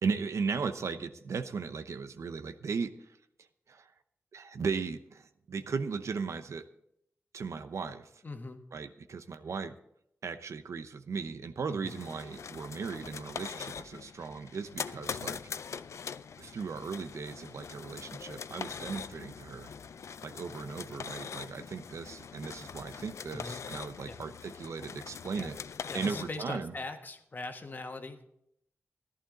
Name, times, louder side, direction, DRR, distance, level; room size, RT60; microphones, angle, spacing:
voice 1, 0.0-3.2 3.7-3.9 4.3-6.7 7.3-8.2 8.7-9.7 10.2-15.4 16.4-19.7 20.2-25.6 25.9-26.7, right 5 dB, 80° right, 10 dB, 0.8 m, -37 dB
voice 2, 8.2-8.6 11.7-11.9 19.7-20.0 23.3-23.6 24.0-24.2 25.3-25.5 25.9-28.3, left 2 dB, 40° left, 5 dB, 1.4 m, -41 dB
sound 1, 11.9-26.3, left 6 dB, 80° left, 0.4 m, -42 dB
14.5 x 11.5 x 3.9 m, 0.75 s
wide cardioid pair, 110°, 5 cm